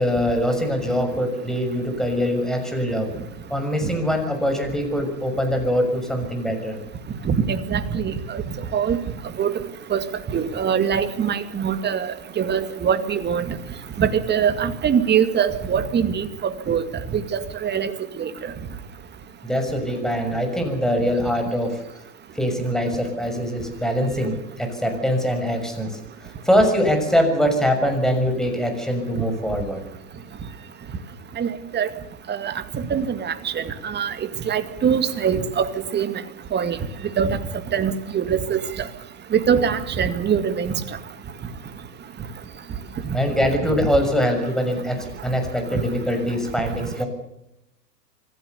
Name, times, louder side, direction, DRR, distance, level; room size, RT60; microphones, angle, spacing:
voice 1, 0.0-3.1 3.5-6.8 19.4-21.8 22.3-29.8 43.1-47.1, equal, ahead, 5 dB, 6.4 m, -23 dB
voice 2, 7.3-8.4 8.7-9.0 9.4-9.5 9.9-10.0 10.3-13.4 14.0-16.3 16.7-16.8 17.1-17.9 18.2-18.3 31.4-31.5 31.7-31.9 32.3-34.1 34.5-36.1 36.5-36.8 37.2-37.4 37.7-38.6 39.3-40.7, right 7 dB, 20° right, 9 dB, 2.3 m, -23 dB
26.0 x 16.5 x 7.0 m, 0.84 s
hypercardioid pair, 115°, 49 cm